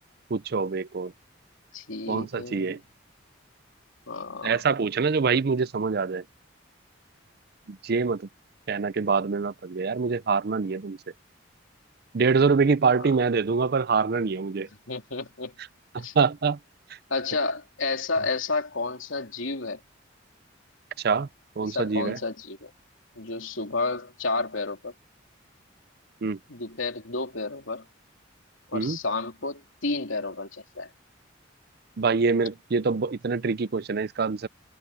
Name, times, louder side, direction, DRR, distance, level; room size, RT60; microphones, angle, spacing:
voice 1, 0.3-1.1 2.1-2.8 4.4-6.2 7.7-8.2 8.7-11.0 12.1-14.7 15.9-16.6 21.0-21.3 21.6-22.2 26.2-26.4 28.7-29.0 32.0-34.5, right 5 dB, 50° right, 0.5 m, -25 dB
voice 2, 1.7-2.8 4.1-4.6 13.0-13.1 14.9-15.5 16.0-16.1 17.1-19.8 21.6-22.7 23.1-24.9 26.5-27.8 28.7-30.9, left 3 dB, 80° left, 3.2 m, -31 dB
head